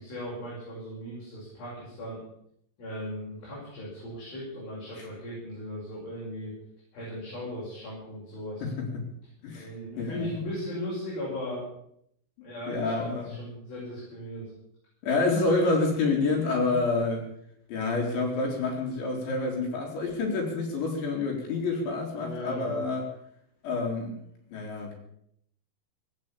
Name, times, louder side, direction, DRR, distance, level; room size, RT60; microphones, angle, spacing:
voice 1, 0.0-2.2 2.8-6.5 6.9-8.6 9.5-11.7 12.4-14.5 16.6-16.8 22.1-22.8, equal, 50° left, -7 dB, 7.9 m, -37 dB
voice 2, 9.4-10.3 12.7-13.3 15.0-17.2 17.7-23.1 23.6-24.2 24.5-24.9, left 3 dB, 65° left, 0 dB, 5.4 m, -28 dB
18.0 x 9.1 x 8.8 m, 0.70 s
omnidirectional pair, 5.6 m